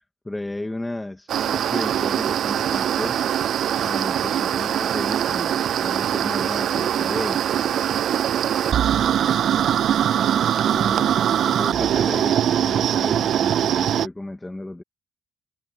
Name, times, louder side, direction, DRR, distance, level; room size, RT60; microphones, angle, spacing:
voice 1, 0.3-3.3 3.8-7.4 10.7-14.8, left 2 dB, 10° left, 2.6 m, -34 dB
sound 1, 1.3-14.1, right 10 dB, 55° right, 0.4 m, -22 dB
voice 2, 8.9-10.6, left 6 dB, 40° left, 3.2 m, -48 dB
cardioid pair, 145°, 0 cm